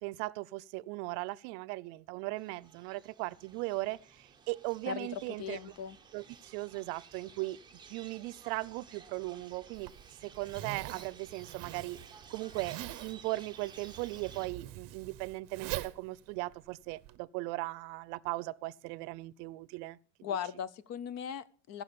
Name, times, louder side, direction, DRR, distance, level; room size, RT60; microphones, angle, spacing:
voice 1, 0.0-5.6 6.1-7.6 7.9-9.9 10.2-12.0 12.3-20.0, right 21 dB, 85° right, 0.6 m, -38 dB
sound 1, 2.4-14.5, right 6 dB, 10° right, 0.8 m, -55 dB
voice 2, 4.9-6.0 20.2-21.8, left 8 dB, 35° left, 0.4 m, -38 dB
Zipper (clothing), 9.7-17.2, right 15 dB, 45° right, 0.7 m, -44 dB
15.0 x 6.0 x 6.8 m
cardioid pair, 165°, 48 cm